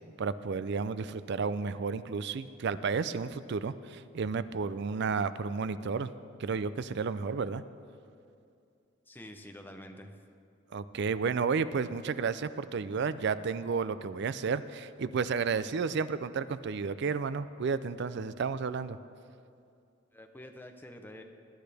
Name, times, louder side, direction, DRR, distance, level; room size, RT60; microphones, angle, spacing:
voice 1, 0.2-6.1 6.4-7.6 10.7-19.0, right 5 dB, 60° right, 14 dB, 0.4 m, -32 dB
voice 2, 9.1-10.2 20.1-21.2, left 1 dB, 10° left, 4 dB, 0.8 m, -47 dB
20.0 x 9.8 x 3.5 m, 2.4 s
head